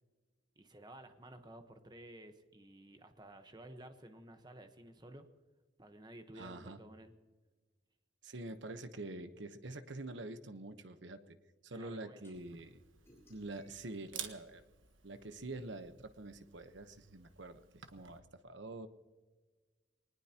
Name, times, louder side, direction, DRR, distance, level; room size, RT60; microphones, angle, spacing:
voice 1, 0.6-5.3 5.8-7.1 11.7-12.3, right 1 dB, 20° right, 7 dB, 1.1 m, -54 dB
voice 2, 6.4-6.8 8.2-11.4 11.6-12.8 13.3-14.6 15.0-18.9, right 2 dB, 70° right, 10 dB, 1.0 m, -46 dB
sound 1, 12.2-12.3 13.0-15.2, equal, 15° left, 5.1 m, -67 dB
Camera, 12.3-18.2, right 9 dB, 90° right, 1.3 m, -53 dB
22.0 x 20.0 x 2.9 m, 1.4 s
head